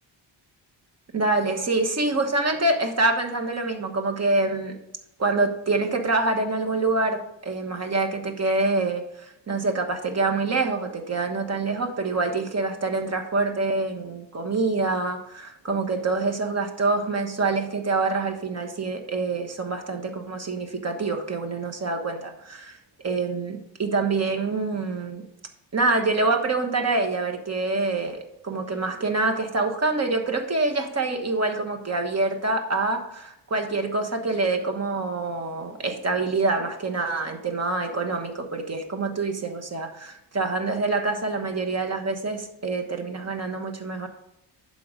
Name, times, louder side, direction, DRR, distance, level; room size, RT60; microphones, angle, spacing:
voice 1, 1.1-4.8 5.2-22.8 23.0-25.2 25.7-44.1, right 3 dB, 35° right, 4 dB, 1.3 m, -26 dB
11.5 x 3.9 x 5.0 m, 0.83 s
cardioid pair, 105°, 46 cm